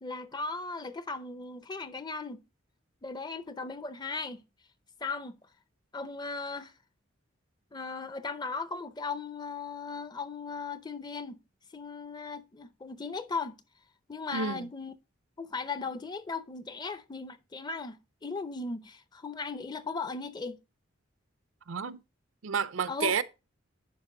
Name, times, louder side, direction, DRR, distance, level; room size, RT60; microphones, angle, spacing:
voice 1, 0.0-2.4 3.0-4.4 5.0-5.4 5.9-6.7 7.7-11.4 11.7-13.6 14.1-14.9 15.4-20.6 22.9-23.1, left 4 dB, 20° left, 0.6 m, -37 dB
voice 2, 14.3-14.7 21.7-22.0 22.4-23.2, right 6 dB, 75° right, 0.5 m, -30 dB
11.0 x 5.0 x 3.8 m
head